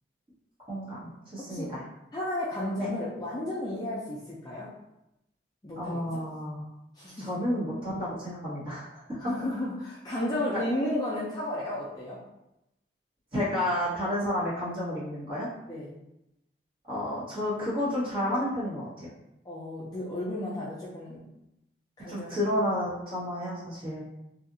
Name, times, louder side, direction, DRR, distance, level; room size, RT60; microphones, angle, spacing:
voice 1, 0.7-1.8 2.8-2.9 5.8-6.7 7.2-9.2 10.5-10.6 13.3-15.5 16.9-19.1 22.1-24.0, left 1 dB, 30° right, -9 dB, 1.2 m, -31 dB
voice 2, 2.1-4.7 5.6-6.0 7.0-7.3 9.2-12.2 15.6-15.9 19.4-21.2 22.0-22.4, left 1 dB, 20° left, -7 dB, 0.4 m, -33 dB
2.7 x 2.5 x 2.6 m, 0.88 s
head